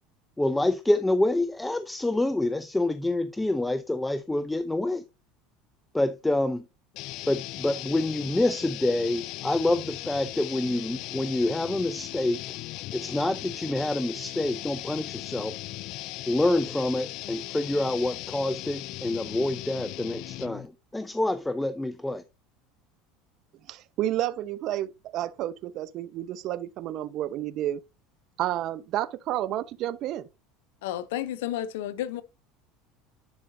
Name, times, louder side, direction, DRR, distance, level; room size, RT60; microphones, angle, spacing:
voice 1, 0.4-5.0 5.9-6.7 7.3-12.4 12.9-15.6 16.3-22.2, left 2 dB, 10° left, 0.5 m, -27 dB
sound 1, 6.9-20.7, left 18 dB, 60° left, 0.3 m, -38 dB
voice 2, 23.7-27.8 28.4-30.3, right 13 dB, 55° right, 0.8 m, -30 dB
voice 3, 30.8-32.2, left 12 dB, 85° left, 0.7 m, -31 dB
10.5 x 4.9 x 2.7 m
supercardioid pair, 110°, 0 cm